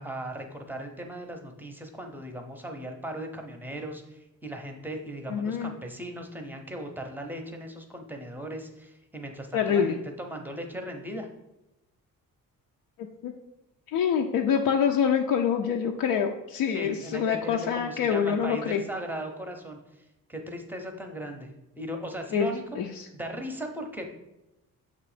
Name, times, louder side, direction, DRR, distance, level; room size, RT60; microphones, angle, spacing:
voice 1, 0.0-11.3 16.7-20.0 20.3-21.5 21.8-22.6 22.9-24.1, right 1 dB, 5° right, 4 dB, 0.6 m, -38 dB
voice 2, 5.3-5.7 9.5-10.0 13.2-13.3 13.9-18.8 22.3-22.5 22.8-23.1, left 7 dB, 85° left, 3 dB, 0.5 m, -26 dB
6.9 x 3.0 x 4.9 m, 0.93 s
wide cardioid pair, 150°, 34 cm